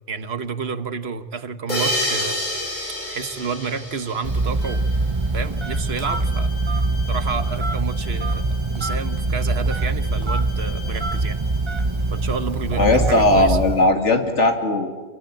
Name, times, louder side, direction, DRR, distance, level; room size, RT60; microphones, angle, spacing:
voice 1, 0.1-2.4 3.1-4.9 5.3-6.5 7.1-11.4 12.1-13.6, right 5 dB, 60° right, 11 dB, 1.4 m, -30 dB
sound 1, 1.7-5.0, left 1 dB, 40° left, 5.8 m, -28 dB
Telephone, 4.2-13.9, right 2 dB, 25° right, 0.9 m, -23 dB
Bowed string instrument, 4.6-12.5, left 4 dB, 25° left, 7.2 m, -44 dB
voice 2, 12.7-15.0, left 2 dB, 80° left, 5 dB, 2.9 m, -18 dB
27.5 x 23.5 x 8.9 m, 1.4 s
omnidirectional pair, 1.2 m